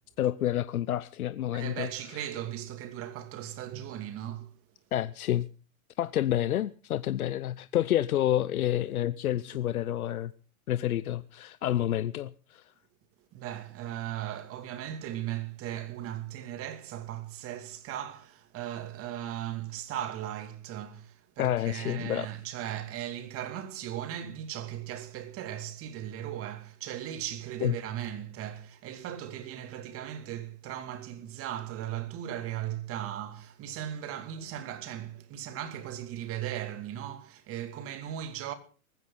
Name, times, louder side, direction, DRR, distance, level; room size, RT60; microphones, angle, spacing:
voice 1, 0.2-1.9 2.1-2.3 4.9-5.5 6.0-10.3 10.7-12.6 21.4-22.3 27.6-27.7, left 12 dB, 80° left, 0.8 m, -29 dB
voice 2, 1.5-4.5 13.3-38.5, right 11 dB, 30° right, 2.5 m, -37 dB
19.5 x 15.0 x 3.9 m
hypercardioid pair, 125°, 43 cm